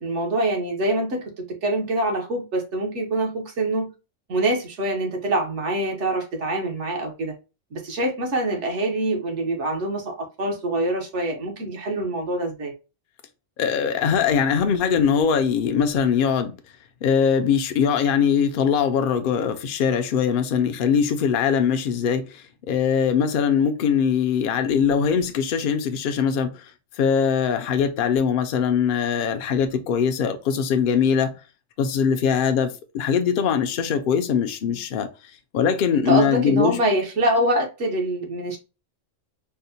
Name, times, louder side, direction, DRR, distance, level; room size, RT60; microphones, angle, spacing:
voice 1, 0.0-3.9 4.3-7.3 7.7-12.7 34.6-34.8 35.9-38.6, right 1 dB, 65° right, 1.2 m, -25 dB
voice 2, 13.6-16.5 17.0-26.7 27.0-31.3 31.8-35.1 35.5-36.8, left 7 dB, 60° left, 0.6 m, -21 dB
4.4 x 2.1 x 2.6 m
omnidirectional pair, 1.3 m